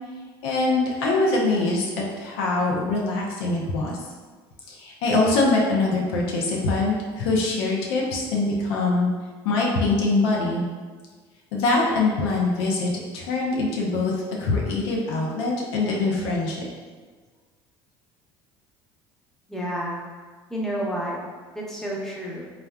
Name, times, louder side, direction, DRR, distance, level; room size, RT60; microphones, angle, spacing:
voice 1, 0.4-4.0 4.7-9.1 9.4-10.6 11.5-14.1 14.4-16.6, left 3 dB, 75° left, -2 dB, 0.5 m, -23 dB
voice 2, 19.5-20.0 20.5-21.2 21.5-22.5, equal, 5° left, -4 dB, 0.8 m, -30 dB
3.5 x 2.2 x 2.2 m, 1.4 s
hypercardioid pair, 65°, 13 cm